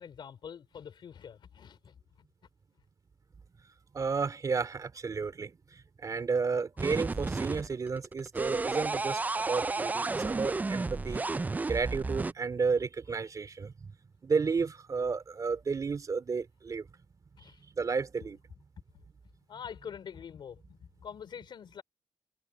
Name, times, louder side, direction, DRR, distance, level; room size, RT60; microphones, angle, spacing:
voice 1, 0.0-2.0 17.4-17.6 19.5-21.8, left 7 dB, 65° left, 3.9 m, -45 dB
voice 2, 3.9-11.2 11.7-13.9 14.2-16.9 17.8-18.4, right 5 dB, 45° right, 2.8 m, -32 dB
sound 1, 6.8-12.3, right 3 dB, 20° right, 0.3 m, -32 dB
cardioid pair, 95°, 8 cm